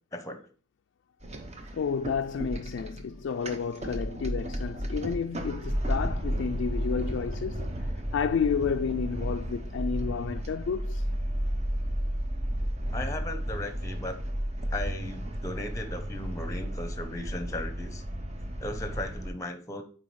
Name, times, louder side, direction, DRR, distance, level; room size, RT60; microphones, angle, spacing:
voice 1, 0.1-0.5 12.9-14.2 14.7-18.0 18.6-19.8, left 1 dB, 15° left, 0.8 m, -36 dB
sound 1, 1.2-19.3, equal, 35° right, 0.8 m, -33 dB
voice 2, 1.7-7.7 8.1-11.1, left 6 dB, 70° left, 0.3 m, -31 dB
9.3 x 3.9 x 3.2 m
head